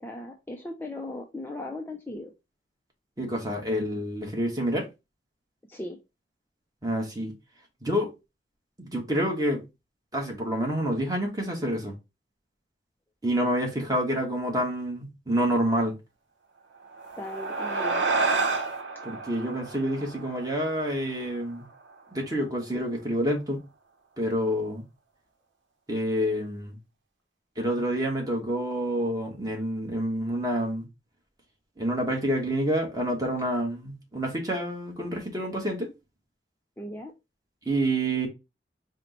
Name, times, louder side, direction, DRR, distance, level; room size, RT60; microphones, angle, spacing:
voice 1, 0.0-2.3 5.7-6.0 17.2-18.1 36.8-37.1, left 2 dB, 10° left, 0.4 m, -37 dB
voice 2, 3.2-4.8 6.8-7.3 7.8-8.1 8.8-9.6 10.1-11.9 13.2-15.9 19.0-21.6 22.1-23.6 24.2-24.8 25.9-26.8 27.6-30.9 31.8-35.9 37.6-38.3, equal, 20° right, 1.1 m, -28 dB
sound 1, 16.9-21.6, right 3 dB, 80° right, 0.8 m, -30 dB
4.3 x 2.1 x 4.0 m
head